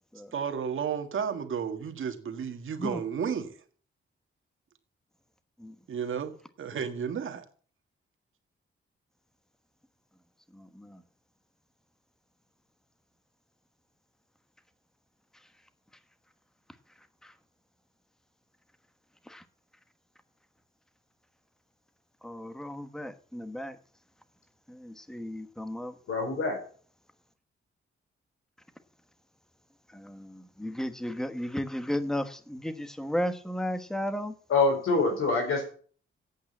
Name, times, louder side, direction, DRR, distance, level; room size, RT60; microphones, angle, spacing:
voice 1, 0.3-3.5 5.9-7.4, right 7 dB, 70° right, 1.7 m, -32 dB
voice 2, 10.5-11.0 17.2-17.3 19.3-19.4 22.2-23.8 24.7-26.0 29.9-34.3, equal, ahead, 1.2 m, -34 dB
voice 3, 26.1-26.6 34.5-35.6, left 3 dB, 85° left, 4.7 m, -25 dB
8.8 x 8.4 x 7.3 m
cardioid pair, 105°, 21 cm